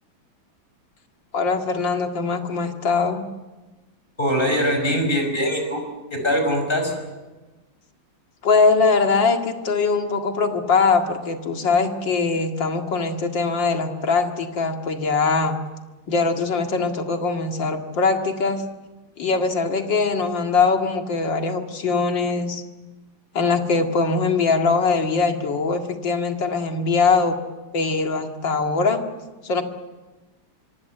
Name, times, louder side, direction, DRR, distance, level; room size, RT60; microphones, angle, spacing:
voice 1, 1.3-3.3 8.4-15.6 16.1-18.6 19.2-22.6 23.3-27.4 27.7-29.0 29.4-29.6, left 4 dB, 65° left, 4 dB, 2.8 m, -21 dB
voice 2, 4.2-5.8 6.1-6.9, equal, 25° left, 4 dB, 5.8 m, -22 dB
25.0 x 25.0 x 7.9 m, 1.2 s
omnidirectional pair, 2.2 m